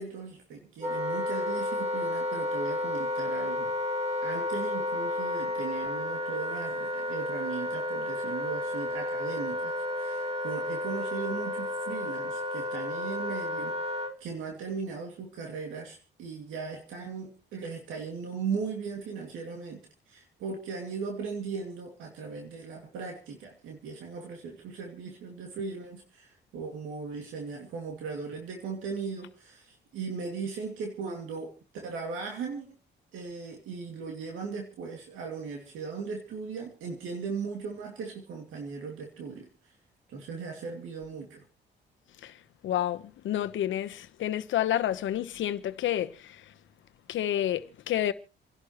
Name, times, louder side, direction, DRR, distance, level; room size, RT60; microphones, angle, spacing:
voice 1, 0.0-3.7 4.2-13.9 14.2-32.7 33.1-39.7 40.1-41.5, right 5 dB, 90° right, 2.5 m, -38 dB
Wind instrument woodwind instrument, 0.8-14.2, left 1 dB, 30° right, 2.2 m, -32 dB
voice 2, 42.6-46.4 47.1-48.1, left 12 dB, 75° left, 1.1 m, -29 dB
28.5 x 11.5 x 3.1 m
cardioid pair, 90°, 20 cm